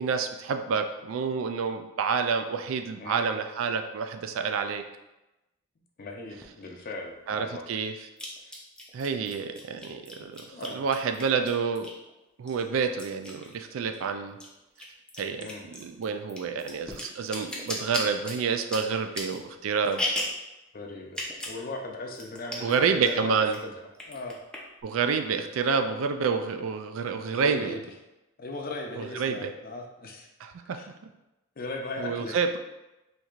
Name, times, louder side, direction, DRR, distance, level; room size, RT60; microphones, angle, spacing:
voice 1, 0.0-4.8 7.3-7.9 8.9-11.9 12.4-14.4 15.2-20.1 22.6-23.6 24.8-27.8 29.0-29.5 30.4-31.1 32.0-32.6, right 5 dB, 85° right, 7 dB, 0.3 m, -28 dB
voice 2, 6.0-7.6 10.2-10.8 15.4-15.6 16.0-16.1 20.7-21.2 21.4-23.7 24.1-24.4 27.3-27.8 28.4-30.3 30.7-30.9 31.6-32.4, left 2 dB, 50° left, 2 dB, 0.5 m, -38 dB
sound 1, 6.4-6.5 8.2-12.1 12.5-14.0 14.3-20.5 21.1-21.6 21.9-22.0 22.2-22.8 23.1-23.6 23.9-24.8, left 1 dB, 5° left, 0.5 m, -36 dB
4.4 x 2.8 x 2.4 m, 0.98 s
head